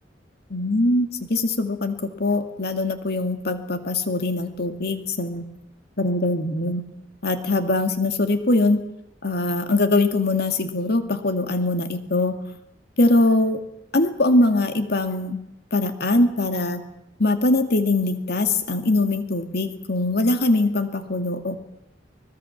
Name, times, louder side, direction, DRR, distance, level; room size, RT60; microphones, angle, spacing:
voice 1, 0.5-5.4 6.0-6.8 7.2-8.8 9.2-12.4 13.0-13.6 13.9-15.4 15.7-16.8 17.2-21.6, left 2 dB, 60° left, 7 dB, 2.3 m, -22 dB
24.5 x 19.5 x 7.3 m, 0.83 s
head